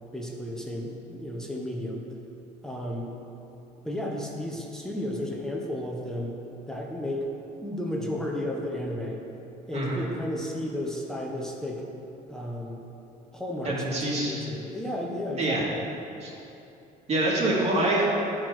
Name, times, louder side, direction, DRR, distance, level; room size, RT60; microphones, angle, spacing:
voice 1, 0.1-2.1 2.6-3.1 3.8-6.4 6.7-7.3 7.6-9.2 9.7-11.8 12.3-12.8 13.3-15.8, left 1 dB, 5° left, -1 dB, 1.1 m, -33 dB
voice 2, 13.6-14.4 15.4-15.6 16.2-16.3 17.1-18.1, right 2 dB, 40° right, -4 dB, 2.3 m, -25 dB
10.0 x 4.6 x 6.3 m, 2.8 s
cardioid pair, 110°, 17 cm